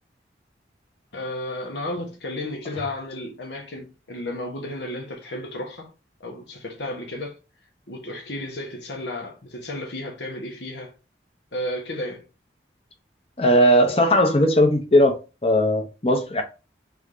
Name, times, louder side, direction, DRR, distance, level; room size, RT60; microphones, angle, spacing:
voice 1, 1.1-5.9 6.2-7.4 7.9-10.9 11.5-12.2, left 1 dB, 80° left, 1.2 m, -33 dB
voice 2, 13.4-15.2 15.4-16.4, equal, 35° left, 0.8 m, -18 dB
3.5 x 3.5 x 3.8 m
head